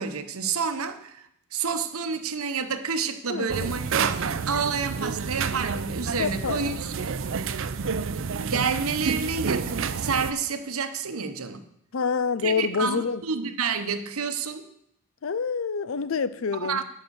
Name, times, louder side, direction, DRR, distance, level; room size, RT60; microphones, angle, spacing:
voice 1, 0.0-6.9 8.4-11.6 12.4-14.7 16.5-16.8, right 5 dB, 80° right, 0.9 m, -29 dB
voice 2, 3.3-3.7 6.2-6.8 11.9-13.2 15.2-16.8, left 5 dB, 70° left, 0.5 m, -27 dB
sound 1, 3.5-10.3, right 5 dB, 60° right, 0.5 m, -29 dB
9.7 x 5.9 x 7.9 m
head